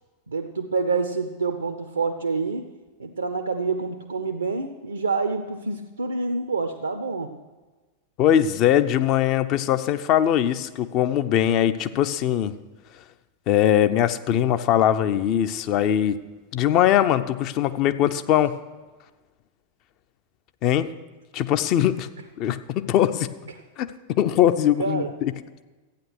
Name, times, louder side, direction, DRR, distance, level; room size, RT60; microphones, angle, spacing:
voice 1, 0.3-2.6 3.0-7.3 24.8-25.1, right 4 dB, 75° right, 7 dB, 0.7 m, -27 dB
voice 2, 8.2-12.5 13.5-16.2 16.5-18.6 20.6-20.9 21.3-22.1 22.4-23.3 23.8-25.3, left 11 dB, 40° left, 11 dB, 0.6 m, -21 dB
13.0 x 9.3 x 6.3 m, 1.3 s
figure-of-eight pair, 90°, 0 cm